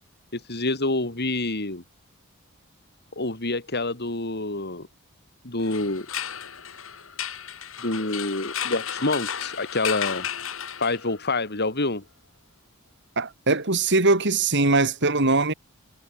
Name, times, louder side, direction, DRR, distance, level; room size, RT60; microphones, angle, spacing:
voice 1, 0.3-1.8 3.2-4.9 5.4-6.1 7.8-10.3 10.8-12.0, left 2 dB, 50° left, 4.1 m, -27 dB
sound 1, 5.6-11.3, left 9 dB, 70° left, 7.6 m, -33 dB
voice 2, 13.2-15.5, right 3 dB, 55° right, 4.5 m, -21 dB
head